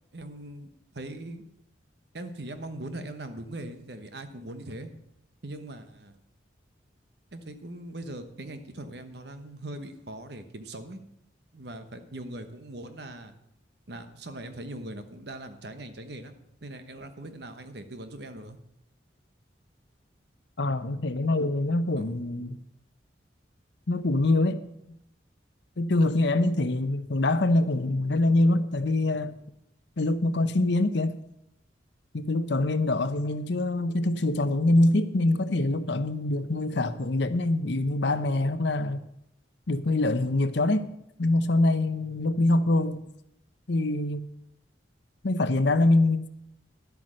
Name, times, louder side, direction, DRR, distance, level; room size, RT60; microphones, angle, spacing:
voice 1, 0.1-1.4 2.1-4.9 5.4-6.2 7.3-11.0 11.5-13.3 13.9-16.3 16.6-18.6 22.0-22.2, right 1 dB, 60° right, 1.1 m, -40 dB
voice 2, 20.6-22.6 23.9-24.6 24.9-25.0 25.8-29.3 30.0-31.2 32.1-39.0 39.7-40.8 41.2-43.0 43.7-44.3 45.2-46.3, left 2 dB, 65° left, 0.8 m, -24 dB
11.5 x 8.3 x 6.4 m
head